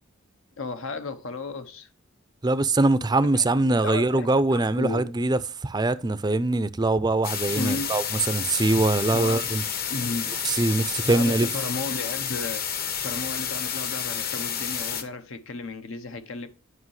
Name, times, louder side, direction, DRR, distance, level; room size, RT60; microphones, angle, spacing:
voice 1, 0.6-1.9 3.3-5.0 7.5-8.0 9.1-9.6 9.9-10.5 11.0-12.7 13.0-16.5, left 3 dB, 75° left, 0.9 m, -34 dB
voice 2, 2.4-9.6 10.4-11.5, right 2 dB, 20° right, 0.5 m, -23 dB
sound 1, 7.2-15.0, left 8 dB, 50° left, 1.0 m, -30 dB
9.6 x 5.6 x 3.2 m
head